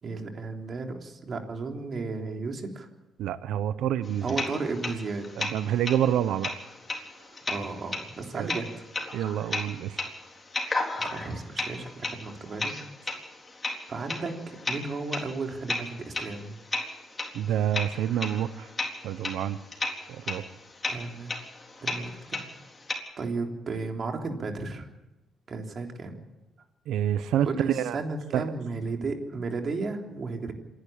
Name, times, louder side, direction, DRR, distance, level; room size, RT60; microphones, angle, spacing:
voice 1, 0.0-2.9 4.2-5.2 7.5-8.8 10.9-12.7 13.9-16.6 20.9-21.4 21.8-22.4 23.2-24.9 25.5-26.2 27.4-30.5, right 3 dB, 45° right, 3 dB, 3.4 m, -34 dB
voice 2, 3.2-4.3 5.4-6.5 8.3-8.5 9.1-10.0 17.3-18.7 19.0-19.6 20.1-20.4 26.9-28.0 28.3-28.4, right 10 dB, 85° right, 14 dB, 0.8 m, -27 dB
sound 1, 4.0-22.9, left 3 dB, 25° left, 4.0 m, -35 dB
27.0 x 11.5 x 8.7 m, 1.0 s
cardioid pair, 90°, 0 cm